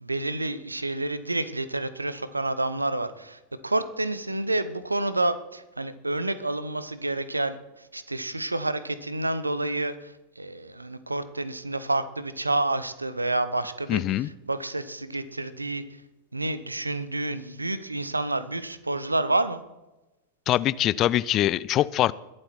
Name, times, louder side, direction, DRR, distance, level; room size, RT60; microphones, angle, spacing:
voice 1, 0.0-7.6 7.9-15.8 16.3-19.6, right 2 dB, 85° right, 15 dB, 0.8 m, -29 dB
voice 2, 13.9-14.3 20.5-22.1, left 13 dB, 35° left, 19 dB, 0.4 m, -23 dB
21.5 x 7.7 x 4.5 m, 1.0 s
figure-of-eight pair, 90°, 0 cm